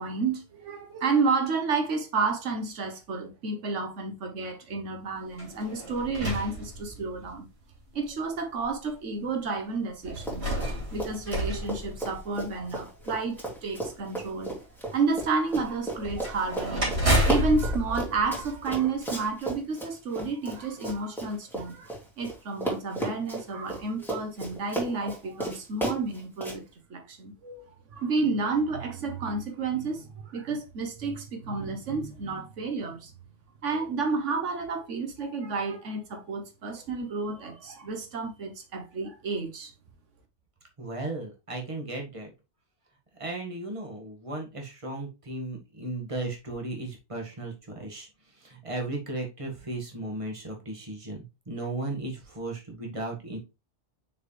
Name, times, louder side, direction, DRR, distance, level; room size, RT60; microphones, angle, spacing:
voice 1, 0.0-7.5 7.9-10.5 10.9-14.6 14.9-26.6 26.9-27.6 27.9-33.1 33.6-39.7, right 4 dB, 90° right, 1.5 m, -31 dB
sound 1, 5.3-7.3 8.1-8.2 10.0-12.6 16.0-19.1, equal, 60° right, 3.4 m, -30 dB
Run, 10.2-10.7 11.0-22.3 22.6-26.6, right 1 dB, ahead, 2.6 m, -34 dB
voice 2, 40.8-42.3 43.1-48.1 48.3-53.4, right 2 dB, 25° right, 1.8 m, -35 dB
6.3 x 4.9 x 3.2 m
omnidirectional pair, 1.2 m